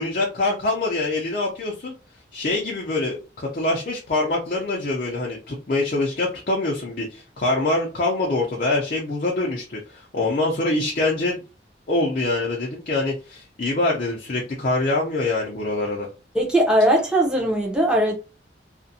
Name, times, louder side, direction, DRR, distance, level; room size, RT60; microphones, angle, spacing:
voice 1, 0.0-1.9 2.3-11.4 11.9-16.1, left 2 dB, 45° left, 0.5 m, -24 dB
voice 2, 16.3-18.1, right 1 dB, 5° right, 0.6 m, -19 dB
2.4 x 2.1 x 2.6 m
head